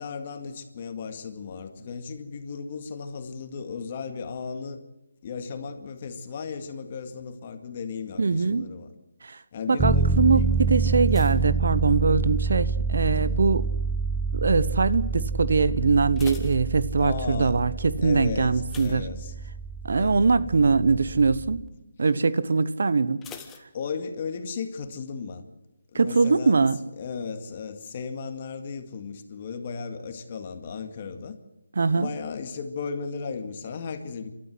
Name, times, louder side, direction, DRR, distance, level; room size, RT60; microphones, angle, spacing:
voice 1, 0.0-4.8 5.2-8.9 9.5-10.5 10.8-11.1 11.4-11.5 13.2-13.3 17.0-17.6 18.0-19.4 19.9-20.2 20.4-20.5 23.7-25.5 25.9-26.6 27.0-31.4 31.9-34.3, left 5 dB, 35° left, 7 dB, 2.1 m, -35 dB
voice 2, 8.2-8.7 9.2-9.4 9.7-10.4 10.7-13.7 14.3-19.1 19.8-21.6 22.0-23.2 25.9-26.8 31.8-32.1, right 4 dB, 65° right, 15 dB, 1.0 m, -22 dB
sound 1, 9.8-21.7, right 4 dB, 5° right, 1.0 m, -28 dB
sound 2, 11.0-12.5 12.8-13.3 13.9-14.3 14.6-14.7 15.1-15.2 15.8-17.3 18.6-19.8 20.1-20.4 20.8-20.9 23.2-24.4 24.7-24.8, left 7 dB, 10° left, 1.3 m, -47 dB
29.0 x 13.0 x 7.9 m, 0.93 s
figure-of-eight pair, 160°, 0 cm